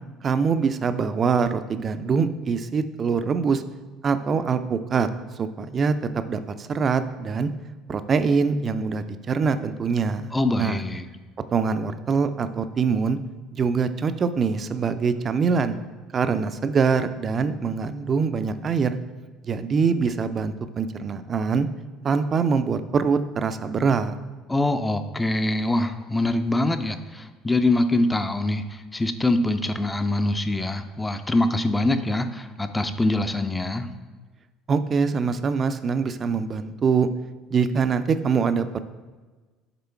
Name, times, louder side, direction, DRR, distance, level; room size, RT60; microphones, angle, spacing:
voice 1, 0.2-3.6 4.0-5.1 5.4-5.9 6.3-7.5 7.9-10.3 10.6-10.8 11.5-13.2 13.5-15.8 16.1-19.0 19.4-21.7 22.0-24.2 34.7-37.1 37.5-38.7, right 5 dB, 40° right, 11 dB, 0.5 m, -24 dB
voice 2, 10.3-11.0 24.5-33.9, left 2 dB, 15° left, 8 dB, 0.5 m, -24 dB
6.8 x 3.7 x 4.5 m, 1.3 s
hypercardioid pair, 65°, 0 cm